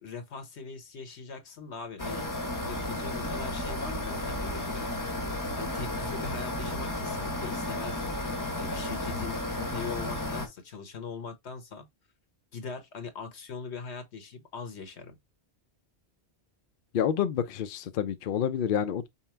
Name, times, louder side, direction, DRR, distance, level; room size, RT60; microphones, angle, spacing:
voice 1, 0.0-2.3 2.7-4.9 5.5-11.9 12.5-15.2, left 5 dB, 85° left, 1.4 m, -41 dB
sound 1, 2.0-10.5, left 1 dB, 20° left, 0.8 m, -33 dB
voice 2, 16.9-19.1, left 8 dB, 60° left, 0.7 m, -28 dB
5.5 x 2.1 x 4.4 m
omnidirectional pair, 1.1 m